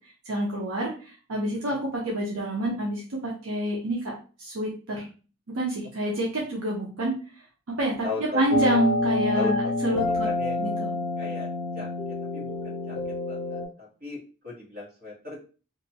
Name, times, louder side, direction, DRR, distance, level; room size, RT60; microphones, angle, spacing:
voice 1, 0.3-0.9 1.3-4.0 4.4-5.1 5.5-7.1 7.8-10.3 10.6-10.9, right 1 dB, 70° right, -3 dB, 0.7 m, -28 dB
voice 2, 8.0-8.4 9.3-9.7 10.2-10.6 11.2-11.5 11.7-11.9 12.3-12.4 12.9-13.0 13.3-13.6 14.0-14.2 14.4-15.4, left 4 dB, 40° right, -3 dB, 1.2 m, -35 dB
sound 1, 8.5-13.7, left 2 dB, 50° left, 0.8 m, -27 dB
2.9 x 2.2 x 2.7 m, 0.36 s
head